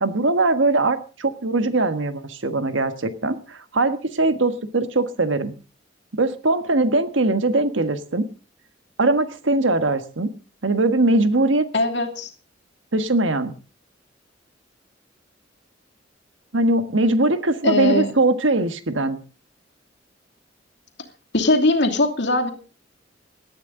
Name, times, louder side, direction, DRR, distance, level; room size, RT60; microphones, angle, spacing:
voice 1, 0.0-5.5 6.1-8.3 9.0-10.3 10.6-11.7 12.9-13.5 16.5-19.2, right 2 dB, 90° right, 10 dB, 1.5 m, -21 dB
voice 2, 11.7-12.3 17.6-18.1 21.3-22.5, left 2 dB, 65° left, 5 dB, 2.7 m, -20 dB
18.5 x 12.5 x 3.9 m, 0.35 s
head